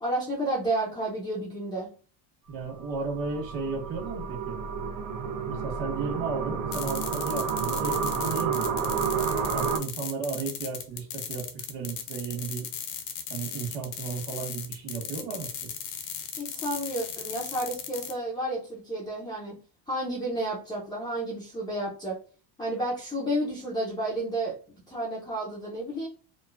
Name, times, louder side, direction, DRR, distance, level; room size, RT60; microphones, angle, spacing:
voice 1, 0.0-1.9 16.4-19.5 19.9-22.2 22.6-24.6 24.9-26.1, right 1 dB, 10° left, -6 dB, 0.4 m, -31 dB
voice 2, 2.5-4.6 5.2-9.0 9.5-12.7 13.3-15.7, right 5 dB, 45° right, 1 dB, 1.3 m, -34 dB
sound 1, 2.8-9.8, right 6 dB, 70° right, 0.6 m, -30 dB
sound 2, 6.7-18.1, left 8 dB, 80° left, 0.8 m, -37 dB
3.0 x 2.0 x 2.3 m, 0.37 s
cardioid pair, 155°, 48 cm